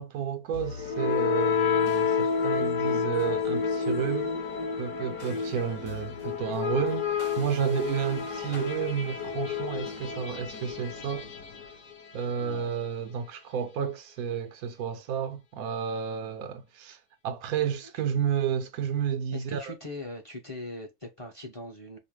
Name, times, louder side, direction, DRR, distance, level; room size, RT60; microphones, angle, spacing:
voice 1, 0.0-4.3 4.8-7.1 7.4-11.3 12.1-17.0 17.2-19.7, right 8 dB, 80° right, 1.1 m, -31 dB
sound 1, 0.5-12.4, left 6 dB, 60° left, 1.2 m, -30 dB
voice 2, 12.2-12.7 17.9-18.0 19.3-22.0, left 1 dB, 25° left, 0.8 m, -41 dB
5.0 x 2.1 x 3.1 m
omnidirectional pair, 1.5 m